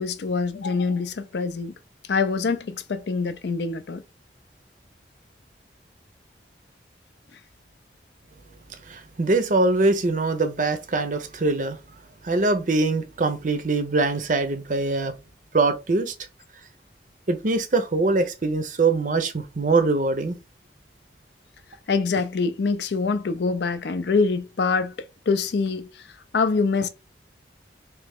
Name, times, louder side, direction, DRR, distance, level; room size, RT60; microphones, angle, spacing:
voice 1, 0.0-1.7 2.1-4.0 21.9-24.9 25.3-26.1 26.3-26.9, left 4 dB, 65° left, 0.4 m, -24 dB
voice 2, 8.9-11.8 12.2-15.1 15.5-16.1 17.3-20.4, right 3 dB, 45° right, 0.6 m, -23 dB
3.3 x 2.9 x 3.5 m
head